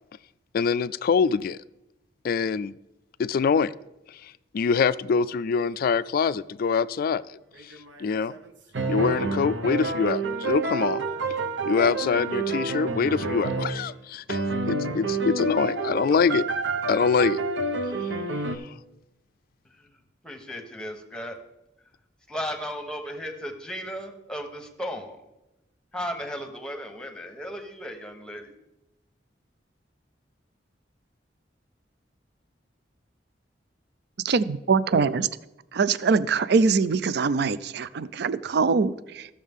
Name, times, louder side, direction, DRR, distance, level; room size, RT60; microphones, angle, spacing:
voice 1, 0.5-1.6 2.2-2.7 3.2-3.7 4.1-7.7 8.0-8.4 8.9-11.0 11.7-16.4 16.9-17.4 18.0-18.1 18.5-18.7, left 5 dB, 55° left, 17 dB, 0.3 m, -25 dB
sound 1, 7.6-8.5 8.7-13.9 14.3-18.6, right 3 dB, 85° right, 0.9 m, -29 dB
voice 2, 20.2-21.4 22.3-25.2 25.9-28.5, equal, 5° left, 5 dB, 1.1 m, -35 dB
voice 3, 34.2-35.3 35.7-39.3, right 4 dB, 65° right, 16 dB, 0.4 m, -23 dB
15.0 x 6.3 x 3.6 m, 0.93 s
head